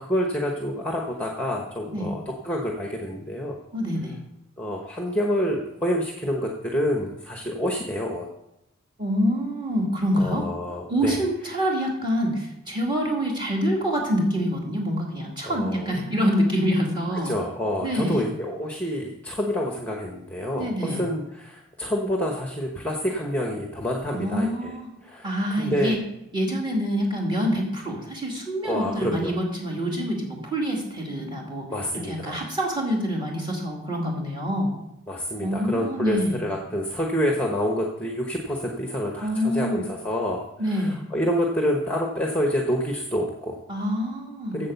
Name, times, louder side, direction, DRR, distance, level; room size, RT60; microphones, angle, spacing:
voice 1, 0.0-3.6 4.6-8.3 10.2-11.2 15.4-15.9 17.2-24.7 25.0-25.3 25.6-26.0 28.6-29.3 31.7-32.4 35.1-43.6 44.5-44.7, equal, 5° left, 1 dB, 0.9 m, -28 dB
voice 2, 3.7-4.2 9.0-10.5 10.9-17.3 17.8-18.2 20.6-21.0 24.1-24.9 25.2-26.0 26.3-31.7 32.0-34.7 35.4-36.3 39.2-39.8 40.6-41.0 43.7-44.7, equal, 20° right, -1 dB, 2.3 m, -26 dB
8.5 x 7.6 x 6.9 m, 0.86 s
head